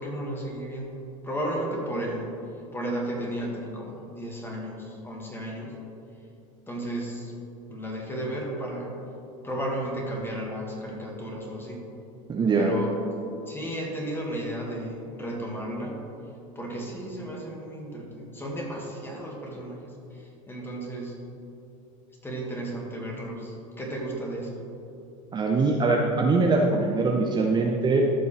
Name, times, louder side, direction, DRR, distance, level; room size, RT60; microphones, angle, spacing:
voice 1, 0.0-2.3 2.7-5.8 6.7-7.3 7.7-8.9 9.4-11.8 12.5-16.0 16.6-21.2 22.2-24.6, right 1 dB, 10° left, -2 dB, 2.0 m, -34 dB
voice 2, 12.3-12.7 25.3-28.0, right 3 dB, 25° right, 0 dB, 0.8 m, -22 dB
13.5 x 5.4 x 3.4 m, 2.8 s
supercardioid pair, 100°, 18 cm